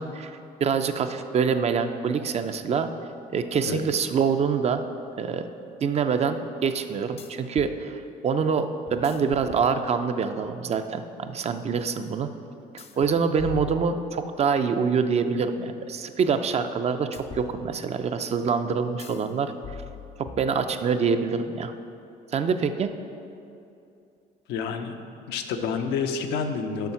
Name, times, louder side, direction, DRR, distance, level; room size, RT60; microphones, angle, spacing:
voice 1, 0.0-2.9 3.3-4.8 5.2-5.4 5.8-12.3 12.7-19.8 20.4-21.7 22.3-22.9, right 6 dB, 40° right, 8 dB, 0.5 m, -25 dB
sound 1, 4.8-4.9 7.2-7.8 8.9-10.2 12.8-14.5 17.1-18.1 19.0-19.3 19.6-21.0, left 7 dB, 35° left, 0.5 m, -43 dB
voice 2, 24.5-24.9 25.3-26.9, left 5 dB, 85° left, 6 dB, 0.7 m, -28 dB
6.9 x 5.5 x 5.8 m, 2.6 s
cardioid pair, 110°, 17 cm